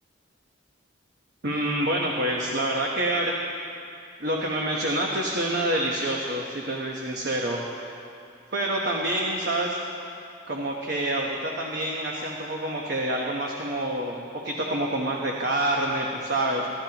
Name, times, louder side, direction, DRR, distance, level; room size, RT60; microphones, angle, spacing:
voice 1, 1.4-3.3 4.2-7.6 8.5-9.8 10.5-16.7, right 1 dB, 55° right, -1 dB, 1.1 m, -27 dB
24.5 x 12.0 x 3.0 m, 2.6 s
head